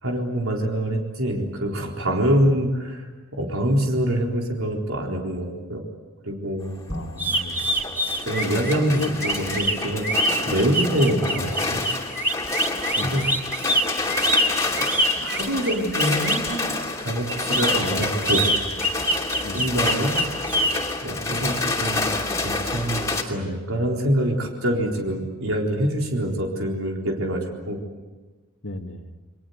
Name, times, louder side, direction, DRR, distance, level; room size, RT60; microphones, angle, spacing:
voice 1, 0.0-5.8 6.2-6.7 8.2-10.1 10.4-11.8 13.0-13.7 14.8-14.9 15.2-18.5 19.5-20.3 20.6-27.8, right 1 dB, 75° right, 0 dB, 4.1 m, -25 dB
sound 1, 6.6-23.2, left 3 dB, 15° left, 2.9 m, -28 dB
voice 2, 6.9-7.8 8.9-9.1 10.5-10.6 13.0-13.2 19.4-19.6 28.6-29.1, left 2 dB, 65° left, 5 dB, 2.1 m, -34 dB
sound 2, 7.2-16.5 17.3-20.7, right 1 dB, 10° right, 4.1 m, -24 dB
29.5 x 22.5 x 8.3 m, 1.3 s
head